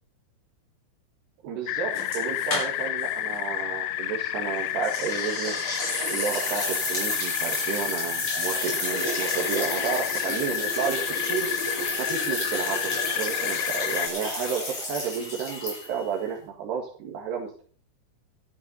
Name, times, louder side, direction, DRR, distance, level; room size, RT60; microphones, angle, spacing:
voice 1, 1.4-5.5 6.1-11.5 12.0-17.6, right 7 dB, 60° right, -1 dB, 3.7 m, -32 dB
sound 1, 1.7-14.1, left 13 dB, 80° left, 3.2 m, -31 dB
sound 2, 1.9-3.1 3.3-3.4 4.8-16.1, left 1 dB, 30° left, 7.3 m, -31 dB
13.5 x 12.5 x 4.1 m, 0.42 s
omnidirectional pair, 5.9 m